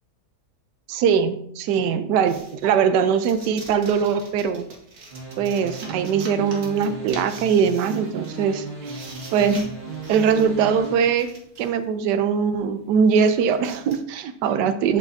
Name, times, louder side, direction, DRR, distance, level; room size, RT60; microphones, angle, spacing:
voice 1, 0.9-4.6 5.4-8.7 9.3-9.7 10.1-11.3 11.6-15.0, right 7 dB, 85° right, 10 dB, 1.2 m, -21 dB
sound 1, 2.3-11.8 12.5-12.6 12.9-13.9, right 3 dB, 60° right, 1.9 m, -44 dB
sound 2, 5.1-10.9, right 3 dB, 40° right, 1.9 m, -36 dB
11.5 x 5.7 x 2.7 m, 0.71 s
omnidirectional pair, 1.8 m